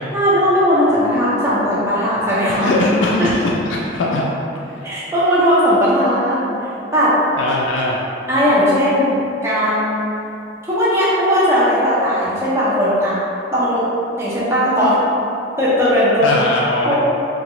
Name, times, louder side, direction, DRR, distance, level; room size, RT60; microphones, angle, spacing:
voice 1, 0.1-2.7 3.2-3.3 4.8-6.5 6.9-7.2 8.3-10.1 10.6-13.2 13.5-13.8 14.2-15.0 15.6-16.4 16.8-17.0, equal, 15° right, -9 dB, 0.5 m, -17 dB
voice 2, 2.5-4.2 4.6-4.9 7.4-8.1 16.2-17.0, left 2 dB, 85° left, -3 dB, 0.3 m, -20 dB
2.9 x 2.3 x 2.9 m, 2.7 s
head